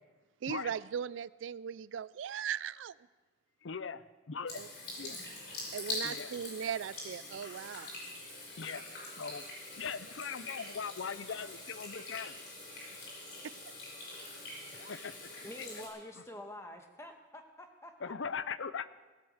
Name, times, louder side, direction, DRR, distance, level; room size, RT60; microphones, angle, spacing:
voice 1, 0.4-2.9 4.6-4.7 5.7-7.9 13.4-13.5, right 8 dB, 90° right, 19 dB, 0.4 m, -38 dB
voice 2, 3.6-4.6 5.0-5.2 6.0-6.4 8.6-8.8 9.2-9.4 9.8-12.4 14.8-15.3 15.6-15.7 18.0-18.9, left 6 dB, 90° left, 15 dB, 0.6 m, -40 dB
Water tap faucet / Sink (filling or washing), 4.5-15.9, left 2 dB, 65° left, 5.7 m, -44 dB
voice 3, 15.4-17.9, left 1 dB, 15° left, 4 dB, 1.3 m, -47 dB
17.0 x 8.1 x 8.0 m, 1.2 s
head